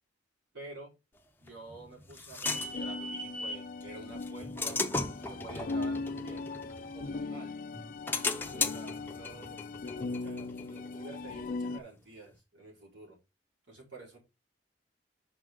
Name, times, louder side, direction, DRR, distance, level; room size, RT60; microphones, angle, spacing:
voice 1, 0.5-0.9 1.4-4.9 5.3-6.5 6.9-7.5 8.1-13.2 13.7-14.2, right 3 dB, 70° right, -2 dB, 4.5 m, -49 dB
sound 1, 1.5-3.7 4.2-7.3 7.7-11.2, left 3 dB, 10° left, 0.7 m, -36 dB
sound 2, 2.4-11.8, left 3 dB, 45° left, 0.4 m, -39 dB
6.1 x 5.4 x 3.7 m, 0.24 s
head